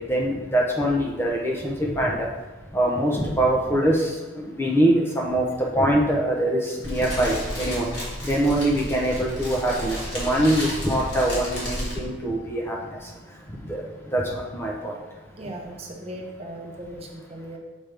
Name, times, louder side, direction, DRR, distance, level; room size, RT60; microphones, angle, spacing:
voice 1, 0.1-2.3 2.7-7.8 8.3-12.8 13.7-13.8 14.1-14.9, right 1 dB, 10° left, -2 dB, 0.7 m, -23 dB
Fire, 6.8-11.9, equal, 60° left, 2.1 m, -32 dB
voice 2, 15.4-17.6, right 1 dB, 30° right, -1 dB, 0.9 m, -37 dB
7.5 x 5.2 x 3.4 m, 1.2 s
head